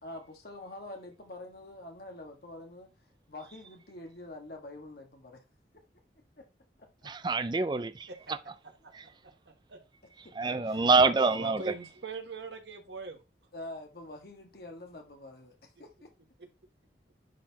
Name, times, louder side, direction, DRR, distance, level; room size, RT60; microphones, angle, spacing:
voice 1, 0.0-2.9 3.3-5.4 6.4-6.5 6.8-6.9 10.2-10.3 10.7-10.8 13.5-16.1, left 2 dB, 60° left, 1.5 m, -46 dB
voice 2, 7.0-8.1 8.9-9.0 10.4-11.6, right 3 dB, 25° right, 0.4 m, -26 dB
voice 3, 11.3-13.2, right 4 dB, 80° right, 1.6 m, -41 dB
10.0 x 4.2 x 2.8 m
head